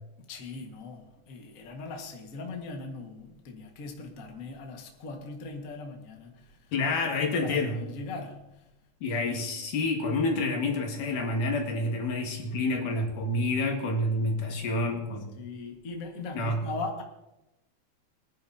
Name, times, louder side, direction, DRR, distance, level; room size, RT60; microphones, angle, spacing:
voice 1, 0.3-6.6 7.4-8.4 15.4-17.0, left 3 dB, 35° left, 2 dB, 1.4 m, -39 dB
voice 2, 6.7-7.8 9.0-15.3 16.3-16.6, left 2 dB, 80° left, 2 dB, 3.3 m, -28 dB
23.0 x 10.5 x 2.8 m, 0.95 s
omnidirectional pair, 3.6 m